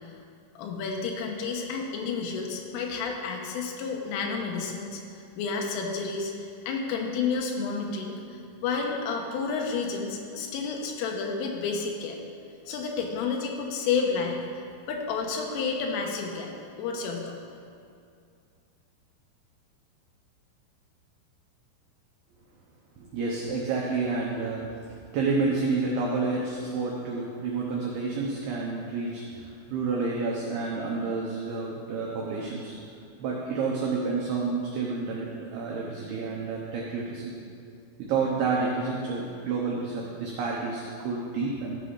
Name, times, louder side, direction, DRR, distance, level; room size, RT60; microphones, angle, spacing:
voice 1, 0.6-12.2 12.7-16.5 16.8-17.4, left 5 dB, 90° left, 1 dB, 3.5 m, -31 dB
voice 2, 23.0-32.8 33.2-37.4 38.0-41.8, right 4 dB, 80° right, -3 dB, 2.3 m, -29 dB
14.0 x 5.1 x 5.7 m, 2.4 s
omnidirectional pair, 5.8 m